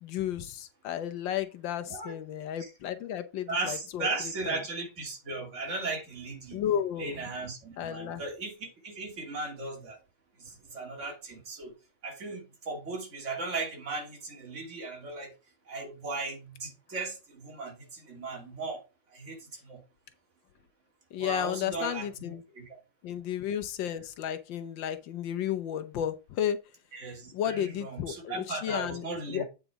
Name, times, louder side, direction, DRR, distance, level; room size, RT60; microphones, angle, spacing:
voice 1, 0.0-4.6 6.5-7.2 7.8-8.2 21.1-22.4 23.0-26.6 27.3-29.4, left 10 dB, 85° left, 1.6 m, -33 dB
voice 2, 3.5-6.6 7.0-10.0 10.4-11.7 12.0-15.3 15.7-18.8 19.1-19.8 21.1-22.8 26.9-29.4, right 3 dB, 40° right, 2.9 m, -37 dB
9.0 x 5.0 x 4.6 m
omnidirectional pair, 2.0 m